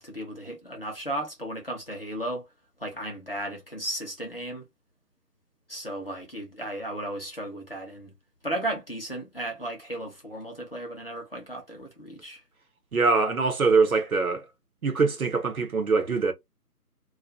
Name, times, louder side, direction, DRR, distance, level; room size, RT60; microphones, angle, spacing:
voice 1, 0.0-2.5 2.8-4.7 5.7-8.1 8.4-12.4, right 1 dB, 35° left, 0.6 m, -35 dB
voice 2, 12.9-14.5 14.8-16.3, right 4 dB, 60° right, 0.9 m, -23 dB
2.3 x 2.1 x 2.8 m
figure-of-eight pair, 165°, 48 cm